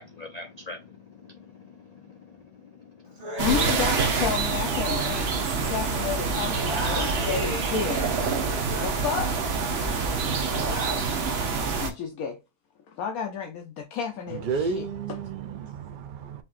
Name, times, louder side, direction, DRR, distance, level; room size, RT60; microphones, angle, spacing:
voice 1, 0.0-2.4, left 3 dB, 60° left, 0.4 m, -44 dB
Human voice, 3.2-5.8 6.1-9.6 9.9-11.0, right 1 dB, 25° right, 1.3 m, -37 dB
voice 2, 3.4-8.0 8.8-9.3 11.8-12.4 13.0-14.8, left 7 dB, 75° left, 1.1 m, -31 dB
sound 1, 3.4-11.9, right 4 dB, 50° right, 0.9 m, -26 dB
voice 3, 14.3-16.4, right 5 dB, 85° right, 0.4 m, -32 dB
5.7 x 2.8 x 2.4 m
omnidirectional pair, 1.5 m